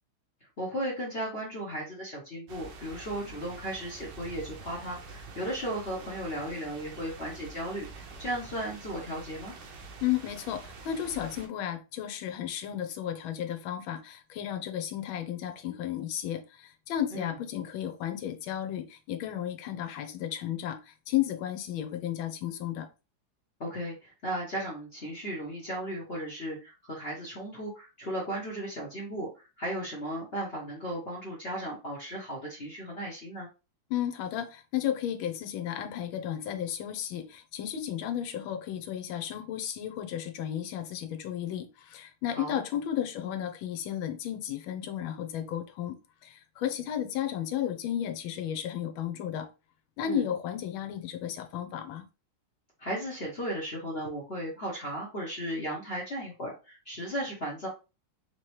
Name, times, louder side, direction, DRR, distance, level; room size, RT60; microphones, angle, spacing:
voice 1, 0.6-7.9 8.2-9.5 17.1-17.3 23.6-33.5 42.3-42.6 50.0-50.2 52.8-57.7, right 1 dB, 45° left, 0.8 m, -35 dB
sound 1, 2.5-11.5, right 3 dB, 70° right, 1.3 m, -46 dB
voice 2, 10.0-22.9 33.9-46.0 46.2-49.5 50.0-52.1, left 10 dB, 75° left, 1.4 m, -33 dB
4.0 x 2.9 x 3.0 m
omnidirectional pair, 2.3 m